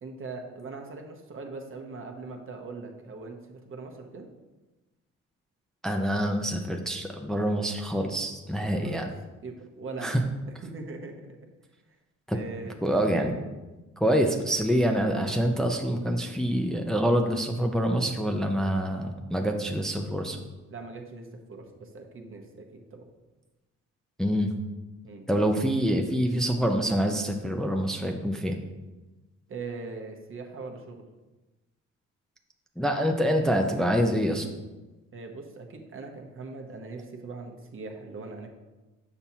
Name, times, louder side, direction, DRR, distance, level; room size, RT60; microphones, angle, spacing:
voice 1, 0.0-4.3 8.6-9.0 9.4-10.2 10.6-11.4 12.3-12.9 20.7-23.0 25.0-25.3 29.5-31.0 35.1-38.5, right 3 dB, 45° right, 2 dB, 1.0 m, -41 dB
voice 2, 5.8-9.1 10.0-10.2 12.3-12.4 12.8-13.3 14.0-20.4 24.2-24.5 25.3-28.6 32.8-34.5, equal, ahead, 3 dB, 0.6 m, -26 dB
7.1 x 5.7 x 2.8 m, 1.1 s
cardioid pair, 90°, 30 cm